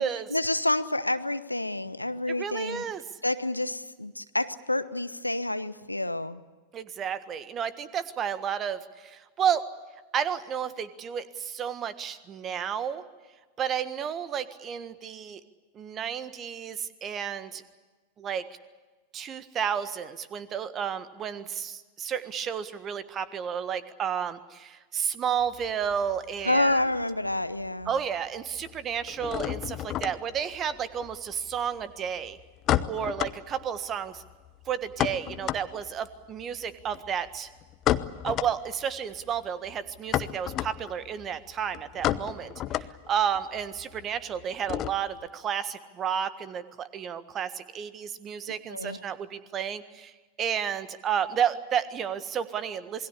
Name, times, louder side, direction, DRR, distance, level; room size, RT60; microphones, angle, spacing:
voice 1, 0.3-2.8 3.2-6.4 26.4-27.9 48.5-49.0, left 1 dB, 85° left, 14 dB, 0.9 m, -28 dB
voice 2, 2.3-3.0 6.7-9.7 10.1-13.0 13.6-15.4 15.7-17.6 18.2-18.5 19.1-26.8 27.9-32.4 32.9-34.2 34.6-37.5 38.2-50.1 50.4-53.1, right 8 dB, 30° right, 13 dB, 1.6 m, -31 dB
sound 1, 25.4-27.0 27.3-28.0 28.2-45.3, left 13 dB, 35° left, 0.9 m, -33 dB
27.5 x 21.5 x 8.4 m, 1.3 s
figure-of-eight pair, 90°, 0 cm